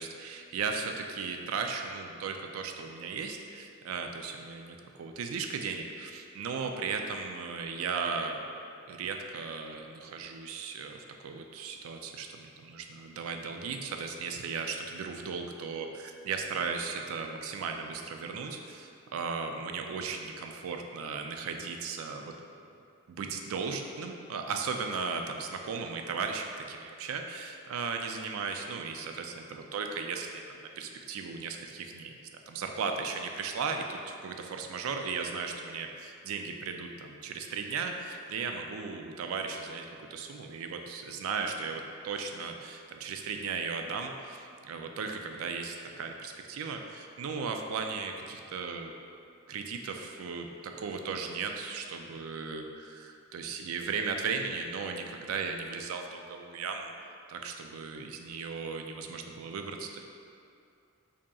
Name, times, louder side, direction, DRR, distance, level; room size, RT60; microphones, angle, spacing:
voice 1, 0.0-8.4 8.9-22.3 23.1-39.9 40.1-48.9 49.5-56.9 57.3-60.0, right 5 dB, 75° right, 4 dB, 0.3 m, -36 dB
5.0 x 2.8 x 2.3 m, 2.5 s
head